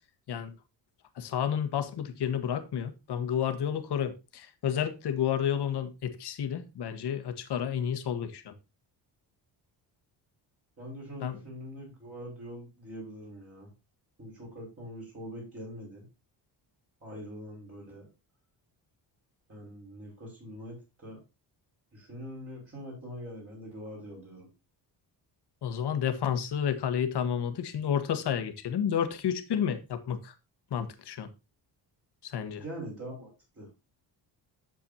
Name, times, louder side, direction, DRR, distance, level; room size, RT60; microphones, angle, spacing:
voice 1, 1.1-8.5 11.2-11.4 25.6-30.3 30.7-31.3 32.2-32.6, left 8 dB, 60° left, 1.6 m, -31 dB
voice 2, 10.8-13.7 14.2-16.1 17.0-18.1 19.5-21.2 21.9-24.5 32.6-33.7, equal, 30° right, 5.3 m, -43 dB
10.0 x 7.4 x 2.7 m
cardioid pair, 135°, 44 cm